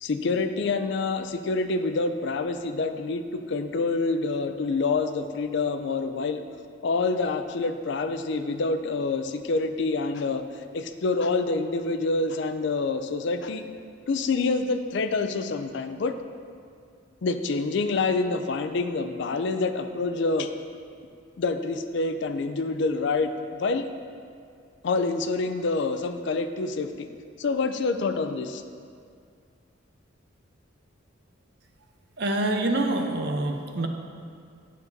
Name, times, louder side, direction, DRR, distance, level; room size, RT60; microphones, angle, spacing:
voice 1, 0.0-6.4 6.8-10.4 10.7-13.7 14.1-16.1 17.2-20.5 21.4-23.9 24.8-27.1 27.4-28.6, left 3 dB, 60° left, 8 dB, 0.4 m, -27 dB
voice 2, 32.2-33.9, right 2 dB, 55° right, 4 dB, 0.6 m, -26 dB
9.3 x 7.3 x 2.6 m, 2.3 s
head